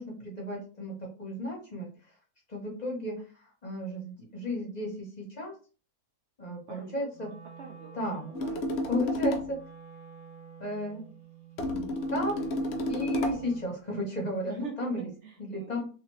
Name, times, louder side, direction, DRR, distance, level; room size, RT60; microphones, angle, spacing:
voice 1, 0.0-1.9 2.5-5.5 6.4-7.3 7.9-8.3 8.9-9.6 10.6-11.0 11.6-12.4 12.9-15.1 15.5-15.8, left 1 dB, 35° left, -2 dB, 0.7 m, -34 dB
voice 2, 6.7-7.1 7.6-7.9 8.3-8.8 14.5-15.8, right 7 dB, 70° right, 2 dB, 0.6 m, -43 dB
Wind instrument woodwind instrument, 7.1-13.8, right 6 dB, 25° right, 1.3 m, -49 dB
sound 1, 8.3-9.6 11.6-13.5, left 1 dB, 85° left, 0.5 m, -31 dB
2.8 x 2.6 x 3.0 m, 0.37 s
omnidirectional pair, 1.7 m